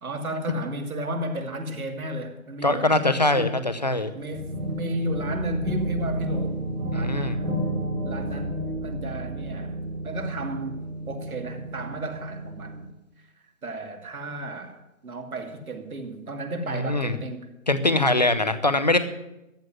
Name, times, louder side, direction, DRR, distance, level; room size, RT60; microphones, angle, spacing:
voice 1, 0.0-3.5 4.1-6.6 6.9-7.7 8.0-10.8 11.1-12.9 13.6-17.5, right 1 dB, 85° right, 5 dB, 2.7 m, -33 dB
voice 2, 2.6-4.1 6.9-7.4 16.7-17.2 17.7-19.0, left 2 dB, 30° left, 11 dB, 0.7 m, -22 dB
sound 1, 4.3-12.8, right 1 dB, 5° right, 1.5 m, -31 dB
14.5 x 7.7 x 9.1 m, 0.93 s
hypercardioid pair, 180°, 42 cm